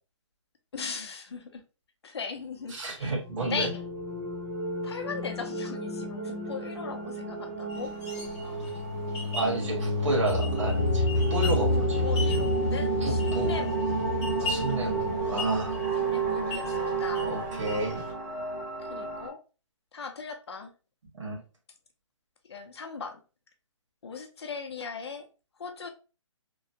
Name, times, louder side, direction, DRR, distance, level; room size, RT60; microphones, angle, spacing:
voice 1, 0.7-1.6 2.0-3.1 3.5-3.8 4.8-7.9 8.4-8.8 11.8-13.8 16.0-17.3 18.8-19.4 19.9-20.7 22.4-23.2 24.0-25.3 25.6-25.9, left 5 dB, 55° left, 0.5 m, -38 dB
voice 2, 2.7-3.7 9.3-12.1 13.0-13.5 14.4-15.7 17.3-18.0 21.2-21.4, right 2 dB, 70° right, 1.4 m, -31 dB
sound 1, 3.2-19.3, right 1 dB, 25° right, 0.5 m, -29 dB
sound 2, 7.7-18.1, left 3 dB, 10° left, 0.7 m, -40 dB
3.0 x 2.1 x 2.7 m
hypercardioid pair, 180°, 17 cm